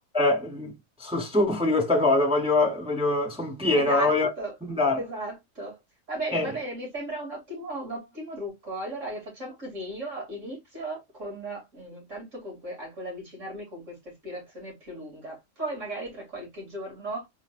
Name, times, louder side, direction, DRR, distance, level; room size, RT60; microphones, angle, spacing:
voice 1, 0.1-0.7 1.0-4.3 4.7-5.0 6.3-6.5, left 2 dB, 5° right, 0.7 m, -23 dB
voice 2, 3.7-4.5 5.0-5.8 6.1-14.0 14.2-17.3, right 1 dB, 65° right, 3.1 m, -36 dB
4.5 x 3.9 x 2.5 m
omnidirectional pair, 1.4 m